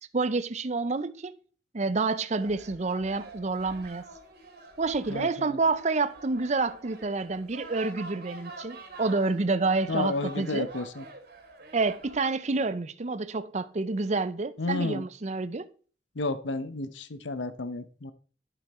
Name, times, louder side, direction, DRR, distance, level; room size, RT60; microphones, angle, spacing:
voice 1, 0.1-1.4 1.7-4.0 4.8-10.7 11.7-15.7, right 3 dB, 40° right, 0.6 m, -28 dB
sound 1, 2.4-12.2, right 2 dB, 55° right, 2.3 m, -46 dB
voice 2, 5.1-5.6 9.9-11.0 14.6-15.0 16.1-18.1, left 2 dB, 80° left, 0.9 m, -32 dB
11.5 x 7.2 x 4.2 m
head